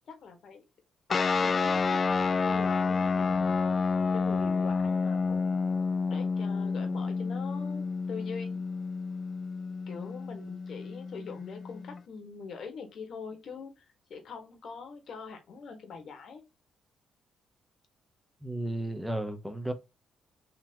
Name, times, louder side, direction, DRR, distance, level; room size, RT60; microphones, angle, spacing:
voice 1, 0.1-0.6 1.2-3.6 4.1-5.6 6.1-8.6 9.9-16.4, left 5 dB, 60° left, 1.4 m, -44 dB
sound 1, 1.1-12.0, left 4 dB, 40° left, 0.4 m, -29 dB
voice 2, 18.4-19.7, right 1 dB, 5° right, 0.9 m, -33 dB
3.9 x 2.9 x 2.8 m
cardioid pair, 90°, 0 cm